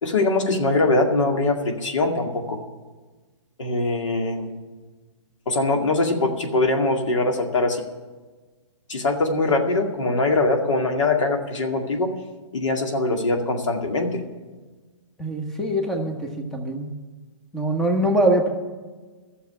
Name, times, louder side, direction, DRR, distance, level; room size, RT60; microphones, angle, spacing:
voice 1, 0.0-2.6 3.6-4.5 5.5-7.8 8.9-12.1 12.5-14.2, left 2 dB, 80° left, 2 dB, 2.2 m, -22 dB
voice 2, 15.2-16.2 16.5-16.9 17.5-18.5, right 1 dB, 5° left, 3 dB, 1.3 m, -22 dB
13.0 x 7.1 x 9.7 m, 1.3 s
hypercardioid pair, 135°, 16 cm